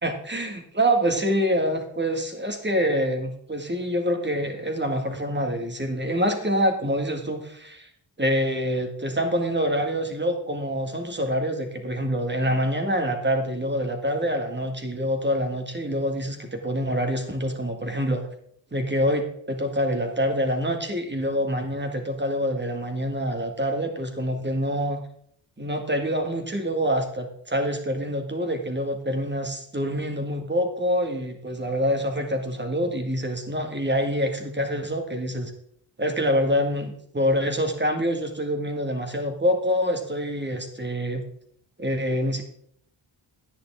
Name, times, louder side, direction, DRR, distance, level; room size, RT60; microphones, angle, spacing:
voice 1, 0.0-7.9 8.2-18.3 18.7-25.0 25.6-35.5 36.0-41.2 41.8-42.4, equal, 25° right, 4 dB, 1.9 m, -26 dB
11.5 x 9.6 x 3.6 m, 0.66 s
cardioid pair, 75°, 45 cm